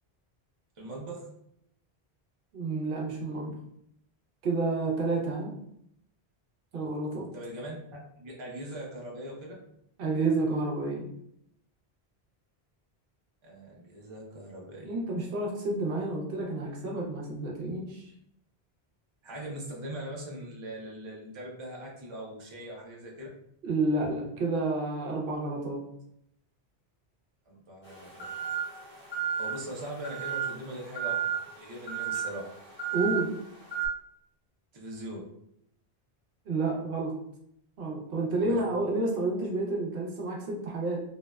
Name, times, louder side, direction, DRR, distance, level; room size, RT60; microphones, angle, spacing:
voice 1, 0.8-1.3 7.3-9.5 13.4-15.0 19.2-23.3 27.5-28.3 29.4-32.4 34.7-35.3 38.4-38.6, right 1 dB, 35° right, -3 dB, 0.5 m, -41 dB
voice 2, 2.5-3.6 4.4-5.5 6.7-7.3 10.0-11.1 14.8-18.1 23.6-25.8 32.9-33.3 36.5-37.2 37.8-41.0, right 2 dB, 65° right, -1 dB, 0.8 m, -30 dB
sound 1, 27.8-33.9, right 8 dB, 15° left, 0.7 m, -34 dB
2.7 x 2.0 x 2.2 m, 0.74 s
omnidirectional pair, 1.1 m